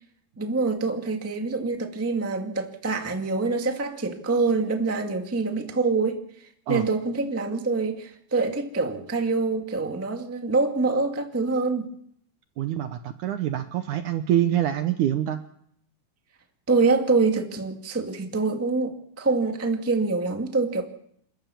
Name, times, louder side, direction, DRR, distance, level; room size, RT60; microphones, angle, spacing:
voice 1, 0.4-6.2 6.7-11.9 16.7-20.8, right 3 dB, 5° right, 4 dB, 1.1 m, -25 dB
voice 2, 12.6-15.4, right 11 dB, 70° right, 9 dB, 2.1 m, -25 dB
28.5 x 13.5 x 7.2 m, 0.70 s
omnidirectional pair, 4.3 m